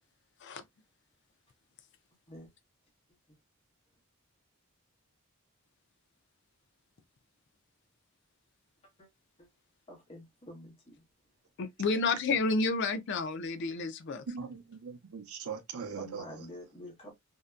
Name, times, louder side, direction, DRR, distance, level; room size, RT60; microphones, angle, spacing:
voice 1, 9.9-10.9 16.0-17.1, left 1 dB, 25° left, 1.0 m, -47 dB
voice 2, 11.6-14.2, left 3 dB, 55° left, 0.4 m, -30 dB
voice 3, 14.3-16.5, right 6 dB, 85° right, 0.6 m, -41 dB
2.7 x 2.1 x 2.3 m
head